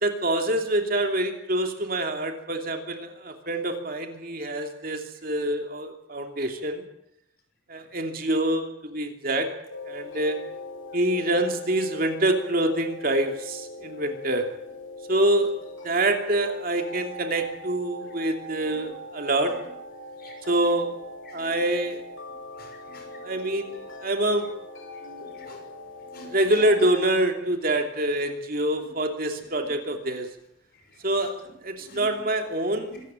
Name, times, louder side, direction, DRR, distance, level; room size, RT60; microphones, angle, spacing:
voice 1, 0.0-6.8 7.7-9.5 9.8-10.4 10.9-14.5 15.1-15.5 15.8-19.6 20.5-20.9 21.3-22.0 23.2-23.7 24.0-24.5 26.2-30.3 31.0-31.3 31.6-33.0, right 1 dB, 45° right, 4 dB, 2.9 m, -26 dB
sound 1, 9.7-27.1, left 2 dB, 85° left, 7.7 m, -41 dB
voice 2, 22.6-23.0 25.0-25.6 26.1-26.5 31.9-32.2 32.9-33.0, left 1 dB, 50° left, 4 dB, 6.3 m, -46 dB
25.5 x 15.0 x 9.1 m, 0.79 s
head